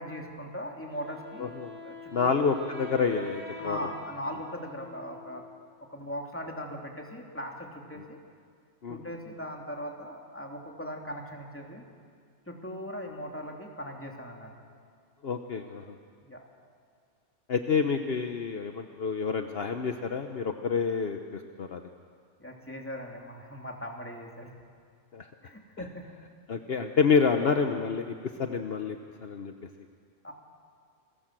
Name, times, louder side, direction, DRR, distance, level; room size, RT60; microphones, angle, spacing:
voice 1, 0.0-1.5 1.8-2.3 3.6-5.4 5.9-8.2 8.9-11.8 12.5-14.5 16.2-16.4 22.4-24.5 25.4-26.0 30.2-30.3, equal, 10° left, 0 dB, 3.0 m, -39 dB
Wind instrument woodwind instrument, 0.9-5.7, left 2 dB, 85° right, 4.8 m, -46 dB
voice 2, 1.4-1.7 2.1-3.8 8.0-8.1 8.8-9.0 15.2-15.9 17.5-21.8 25.1-25.3 26.5-29.5, left 5 dB, 60° left, 6 dB, 1.2 m, -28 dB
29.0 x 20.5 x 7.6 m, 2.1 s
omnidirectional pair, 1.2 m